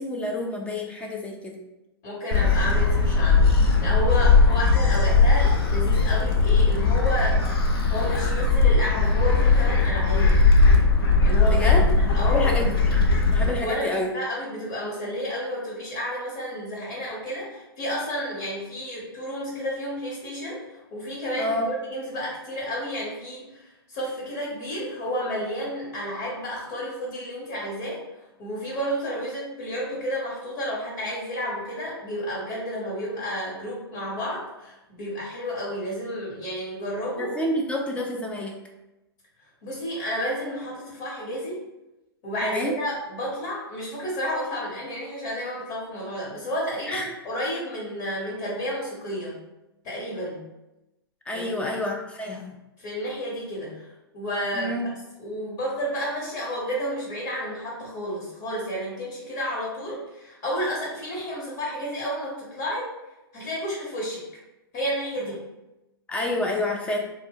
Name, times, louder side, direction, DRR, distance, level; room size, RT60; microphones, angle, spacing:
voice 1, 0.0-1.6 11.5-11.8 12.3-13.1 13.3-14.1 21.4-21.7 37.2-38.6 42.4-42.7 46.9-47.1 51.3-52.5 54.5-54.9 66.1-67.0, left 1 dB, 10° left, 1 dB, 0.4 m, -28 dB
voice 2, 2.0-7.4 7.9-10.4 11.2-12.5 13.6-28.0 28.4-37.3 39.6-41.6 42.2-49.4 49.8-50.4 51.3-51.7 52.8-54.9 55.2-62.9 63.3-64.2 64.7-65.4, equal, 45° left, -5 dB, 1.1 m, -31 dB
Gull seagull, 2.3-13.5, left 3 dB, 65° left, 0.6 m, -19 dB
2.4 x 2.2 x 3.5 m, 0.96 s
hypercardioid pair, 115°, 13 cm